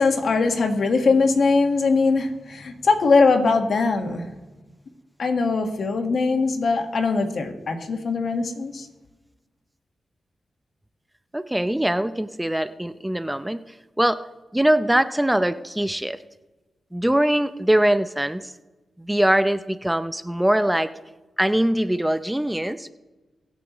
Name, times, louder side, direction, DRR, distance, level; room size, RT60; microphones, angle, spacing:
voice 1, 0.0-4.2 5.2-8.9, left 4 dB, 70° left, 5 dB, 1.6 m, -21 dB
voice 2, 11.3-13.6 14.0-14.2 14.5-16.2 16.9-18.5 19.0-20.9 21.4-22.9, right 1 dB, 10° right, 12 dB, 0.6 m, -22 dB
23.0 x 8.2 x 3.1 m, 1.1 s
cardioid pair, 65°, 0 cm